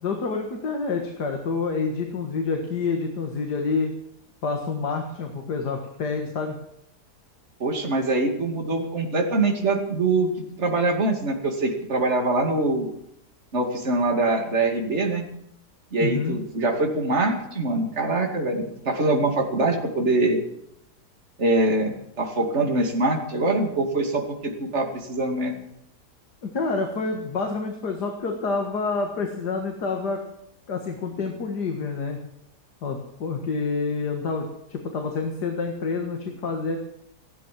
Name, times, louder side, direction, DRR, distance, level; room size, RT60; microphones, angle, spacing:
voice 1, 0.0-3.9 4.4-6.6 16.0-16.4 26.4-30.2 30.7-32.2 32.8-36.8, left 4 dB, 70° left, 3 dB, 2.3 m, -28 dB
voice 2, 7.6-10.3 10.6-12.9 13.5-15.2 15.9-20.4 21.4-25.5, right 2 dB, 40° right, 2 dB, 2.8 m, -23 dB
15.5 x 12.5 x 7.7 m, 0.76 s
omnidirectional pair, 1.8 m